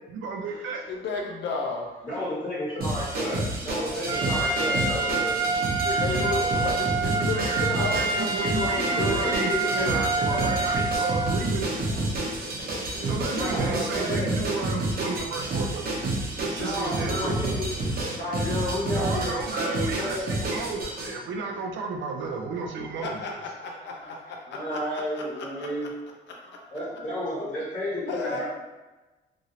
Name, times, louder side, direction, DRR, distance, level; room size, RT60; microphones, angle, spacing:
voice 1, 0.1-0.8 7.2-11.7 13.0-15.9 16.4-17.4 18.9-23.4, right 4 dB, 75° right, 2 dB, 0.5 m, -33 dB
voice 2, 0.9-1.9 5.8-9.3 23.0-24.8 25.1-25.7 26.3-26.6 28.1-28.4, left 4 dB, 65° left, 0 dB, 0.6 m, -33 dB
voice 3, 1.7-5.4 8.6-10.7 11.8-12.6 12.9-14.3 15.3-15.5 16.1-17.7 18.1-20.3 22.2-22.3 24.4-25.9 26.5-28.4, equal, 30° left, -9 dB, 1.5 m, -32 dB
sound 1, 2.8-21.1, right 2 dB, 50° right, 0.9 m, -29 dB
Trumpet, 4.1-11.4, right 4 dB, 20° right, 0.3 m, -27 dB
2.9 x 2.6 x 2.8 m, 1.1 s
cardioid pair, 90°, 20 cm